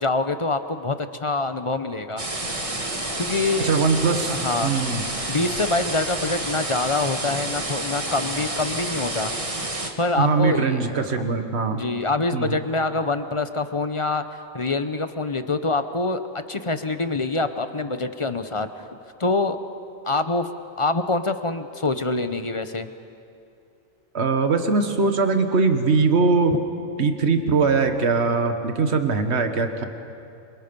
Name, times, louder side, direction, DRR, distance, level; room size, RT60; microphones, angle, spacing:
voice 1, 0.0-2.2 3.2-3.7 4.3-4.8 5.3-9.3 10.0-11.3 11.7-14.2 14.5-16.2 16.5-18.8 19.2-19.6 20.0-20.5 20.8-22.9 26.5-26.6, left 3 dB, 30° left, 9 dB, 0.7 m, -25 dB
sound 1, 2.2-9.9, right 1 dB, 25° right, 1.8 m, -29 dB
voice 2, 3.6-5.0 10.2-11.8 12.3-12.5 24.1-26.6 27.0-29.8, right 4 dB, 50° right, 6 dB, 1.7 m, -21 dB
29.0 x 24.0 x 5.4 m, 2.6 s
omnidirectional pair, 1.4 m